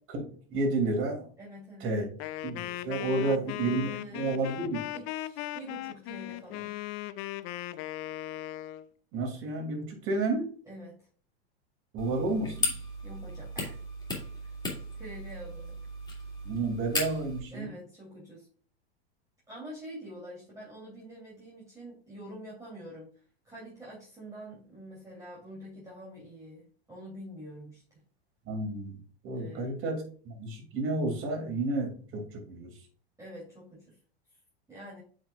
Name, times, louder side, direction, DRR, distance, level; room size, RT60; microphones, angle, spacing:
voice 1, 0.1-1.3 1.8-2.0 2.4-3.9 4.1-4.8 9.1-10.5 11.9-12.8 16.4-17.7 28.5-32.7, right 2 dB, 45° right, 2 dB, 2.9 m, -31 dB
voice 2, 1.4-2.0 3.1-3.4 3.8-4.6 4.9-6.8 10.7-11.0 13.0-13.8 14.4-14.5 14.9-15.8 17.5-18.5 19.5-23.1 23.4-28.0 29.3-29.8 33.2-33.9 34.7-35.0, right 1 dB, 10° right, -6 dB, 3.2 m, -46 dB
Wind instrument woodwind instrument, 2.2-8.9, left 15 dB, 45° left, 0.5 m, -38 dB
sound 1, 12.0-17.4, left 2 dB, 15° left, 2.5 m, -36 dB
8.7 x 5.5 x 2.4 m, 0.43 s
hypercardioid pair, 100°, 32 cm